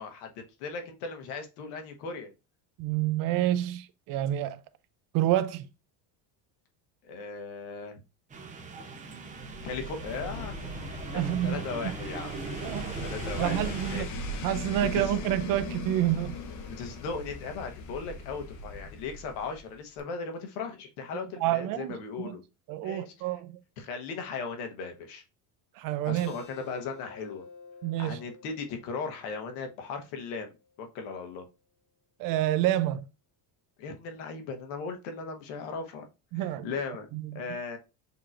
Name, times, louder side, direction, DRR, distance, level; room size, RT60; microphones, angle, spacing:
voice 1, 0.0-2.3 7.1-8.0 9.6-10.5 11.1-12.3 13.0-14.1 14.9-15.1 16.8-22.4 22.8-23.1 23.8-25.2 26.0-27.4 28.0-31.4 33.8-36.1 36.6-37.1 37.3-37.8, left 4 dB, 85° left, 1.2 m, -37 dB
voice 2, 2.8-4.6 5.1-5.7 11.1-11.9 12.6-13.1 13.4-14.1 14.4-16.4 21.4-22.4 22.7-23.5 25.8-26.3 27.8-28.2 32.2-33.1 36.3-36.7 37.1-37.4, right 13 dB, 55° right, 0.5 m, -28 dB
sound 1, 8.3-14.0, right 3 dB, 20° right, 0.8 m, -39 dB
sound 2, 9.4-19.7 20.0-20.1, left 1 dB, 45° left, 0.8 m, -39 dB
Keyboard (musical), 26.2-31.3, left 4 dB, 25° left, 1.1 m, -52 dB
6.7 x 2.9 x 2.5 m
cardioid pair, 150°, 42 cm